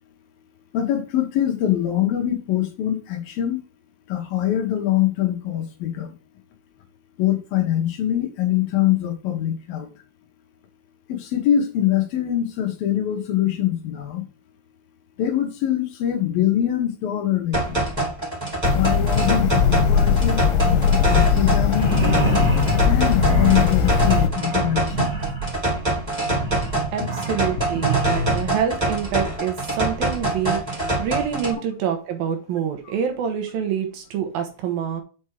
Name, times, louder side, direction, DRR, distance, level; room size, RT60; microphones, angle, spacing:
voice 1, 0.7-3.6 4.1-6.1 7.2-9.9 11.1-14.2 15.2-17.8 18.7-21.9 22.8-25.2, left 11 dB, 70° left, 3 dB, 3.0 m, -23 dB
sound 1, 17.5-31.5, right 2 dB, 10° right, 3.6 m, -25 dB
sound 2, 18.6-24.3, left 7 dB, 90° left, 3.0 m, -19 dB
sound 3, 21.6-28.5, right 4 dB, 25° right, 1.9 m, -28 dB
voice 2, 26.9-35.0, right 8 dB, 70° right, 5 dB, 2.8 m, -26 dB
6.3 x 6.0 x 4.9 m, 0.35 s
omnidirectional pair, 4.6 m